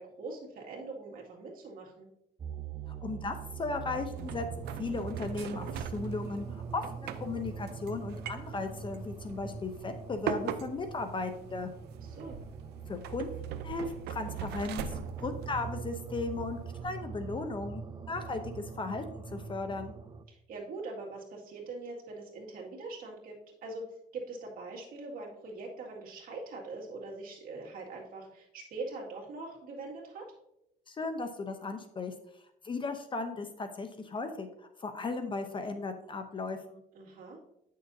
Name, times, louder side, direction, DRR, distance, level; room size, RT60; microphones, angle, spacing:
voice 1, 0.0-2.1 12.0-12.4 20.3-23.9 24.1-30.3 36.9-37.4, right 3 dB, 55° right, -1 dB, 2.1 m, -42 dB
sound 1, 2.4-20.2, right 6 dB, 25° right, 0.4 m, -42 dB
voice 2, 3.0-11.7 12.9-13.3 13.6-19.9 30.9-32.1 32.6-34.5 34.8-36.8, left 3 dB, 30° left, 8 dB, 0.7 m, -36 dB
sound 2, 3.2-16.8, right 7 dB, 75° right, 0.6 m, -43 dB
9.1 x 6.5 x 2.7 m, 0.81 s
cardioid pair, 110°, 17 cm